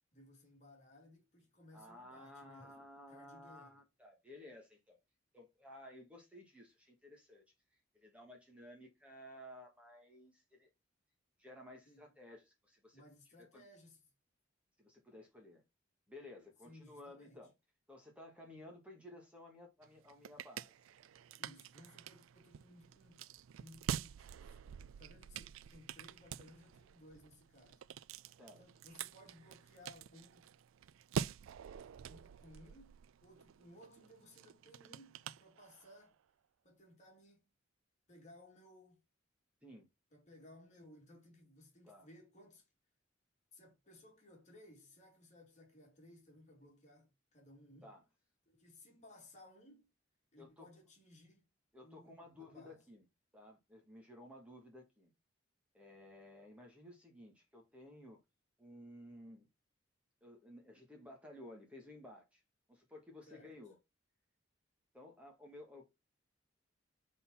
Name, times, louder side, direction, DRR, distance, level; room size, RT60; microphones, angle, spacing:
voice 1, 0.1-3.8 11.9-12.1 12.9-14.1 16.6-17.4 21.4-23.2 23.6-27.8 28.6-30.5 32.1-36.2 36.6-37.5 38.1-39.0 40.1-42.7 43.5-47.9 48.5-49.9 50.3-51.4 51.8-52.8 63.3-63.6, left 1 dB, 35° left, 2.3 m, -60 dB
voice 2, 1.7-5.0 5.3-7.4 7.9-10.7 11.4-13.0 13.5-13.6 14.8-15.6 16.1-17.5 17.9-20.7 28.4-28.6 39.6-39.9 41.8-42.1 47.8-48.0 50.4-50.7 51.7-53.0 53.3-55.1 55.7-58.2 58.6-59.5 60.2-62.4 62.7-63.8 64.9-65.8, left 1 dB, 5° right, 1.6 m, -55 dB
sound 1, 19.8-36.1, right 8 dB, 85° right, 0.3 m, -47 dB
5.4 x 4.2 x 5.6 m
head